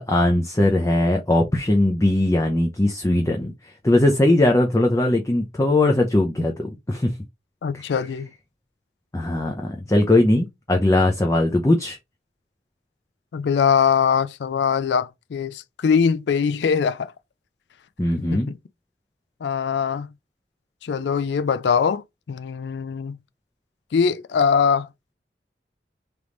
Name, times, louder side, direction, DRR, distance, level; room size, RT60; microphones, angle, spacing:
voice 1, 0.0-3.5 3.8-7.1 7.7-7.9 9.1-9.5 9.9-12.0 18.0-18.5, left 1 dB, 15° left, 0.5 m, -19 dB
voice 2, 7.6-8.3 13.3-17.1 18.3-18.6 19.4-20.1 20.8-23.2 23.9-24.9, left 6 dB, 75° left, 0.4 m, -22 dB
3.4 x 3.0 x 3.7 m
head